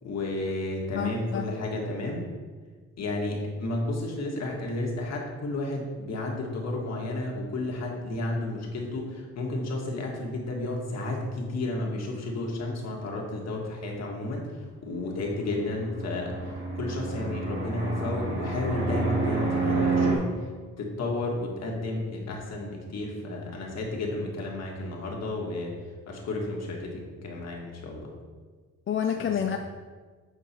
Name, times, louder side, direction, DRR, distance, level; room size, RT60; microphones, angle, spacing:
voice 1, 0.0-2.3 3.0-16.3 16.8-20.3 20.8-25.7 26.1-28.1 29.2-29.6, left 2 dB, 60° left, 0 dB, 1.8 m, -32 dB
voice 2, 0.9-1.5 28.9-29.6, left 8 dB, 40° left, 5 dB, 0.5 m, -28 dB
Fixed-wing aircraft airplane, 15.2-20.2, right 3 dB, 40° right, 2.3 m, -29 dB
7.9 x 4.6 x 4.4 m, 1.5 s
cardioid pair, 90°, 30 cm